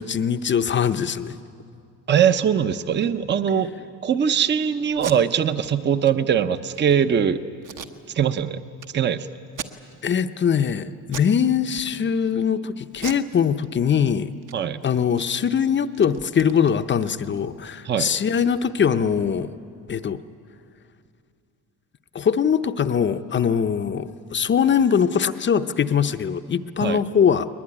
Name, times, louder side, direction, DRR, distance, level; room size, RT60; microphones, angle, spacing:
voice 1, 0.0-1.4 10.0-14.3 14.8-19.5 19.9-20.2 22.1-27.5, left 7 dB, 30° left, 10 dB, 0.7 m, -22 dB
voice 2, 2.1-3.7 4.0-7.4 8.1-8.6 8.9-9.3 14.5-14.8 17.8-18.1 26.8-27.0, right 8 dB, 30° right, 11 dB, 0.7 m, -21 dB
Packing tape duct tape, 4.9-5.2 5.6-5.7 6.0-6.1 6.6-6.9 7.6-8.4 8.8-8.9 9.5-10.2 10.5-10.7 11.1-11.4 11.7-12.3 12.9-14.1 14.4-14.5 14.8-17.5, right 8 dB, 50° right, 1.3 m, -38 dB
21.0 x 21.0 x 9.9 m, 2.4 s
cardioid pair, 135°, 38 cm